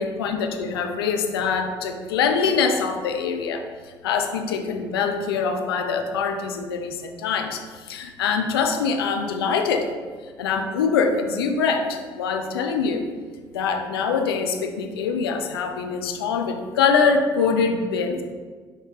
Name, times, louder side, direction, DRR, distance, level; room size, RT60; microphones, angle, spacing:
voice 1, 0.0-3.6 4.0-9.9 10.4-13.0 13.5-18.2, left 5 dB, 85° left, 5 dB, 0.4 m, -24 dB
4.9 x 2.7 x 3.3 m, 1.6 s
hypercardioid pair, 55°, 12 cm